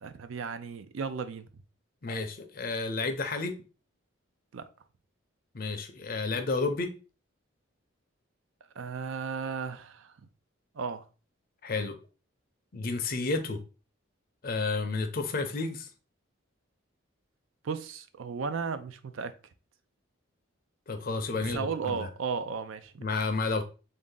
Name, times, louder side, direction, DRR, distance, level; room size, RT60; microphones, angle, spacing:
voice 1, 0.0-1.5 4.5-4.6 8.8-10.1 10.8-11.0 17.6-19.3 21.5-23.0, right 5 dB, 70° right, 0.4 m, -35 dB
voice 2, 2.0-3.6 5.5-6.9 11.6-12.0 12.7-13.6 14.4-15.9 20.9-22.1 23.0-23.6, left 3 dB, 45° left, 0.5 m, -31 dB
3.5 x 2.6 x 3.7 m
head